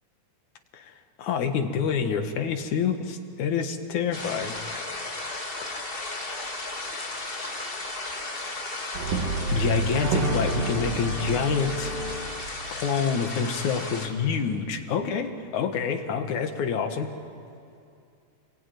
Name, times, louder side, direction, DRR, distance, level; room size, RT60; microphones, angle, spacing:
voice 1, 1.2-4.5 5.6-5.8 9.5-11.9 12.7-17.1, left 6 dB, 65° left, 6 dB, 2.9 m, -27 dB
sound 1, 4.1-14.1, left 2 dB, 20° left, 1.7 m, -35 dB
Brass instrument, 8.9-13.2, right 3 dB, 85° right, 3.7 m, -29 dB
30.0 x 21.0 x 9.3 m, 2.5 s
omnidirectional pair, 3.8 m